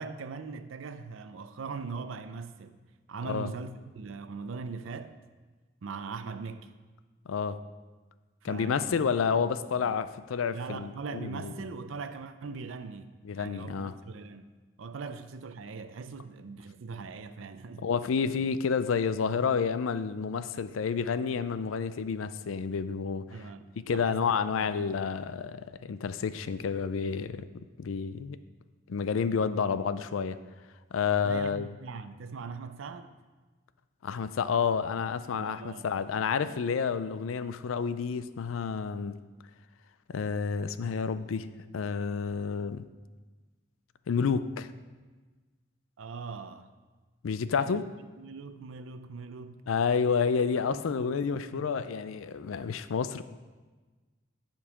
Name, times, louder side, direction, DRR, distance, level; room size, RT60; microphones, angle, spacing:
voice 1, 0.0-2.8 3.1-5.2 5.8-6.7 8.5-8.9 9.3-9.4 9.8-10.0 10.5-14.5 14.8-17.9 23.3-24.3 24.6-24.8 31.1-33.1 35.4-35.9 46.0-46.7 47.5-47.8 48.2-49.6 50.5-51.8, right 4 dB, 85° right, 0.5 m, -41 dB
voice 2, 7.3-7.6 8.4-11.5 13.2-13.9 17.8-23.5 23.8-28.4 28.9-30.4 30.9-31.7 34.0-39.2 40.1-41.5 41.7-42.8 44.1-44.7 47.2-47.8 49.7-53.2, left 6 dB, 90° left, 0.4 m, -30 dB
9.7 x 5.3 x 4.9 m
head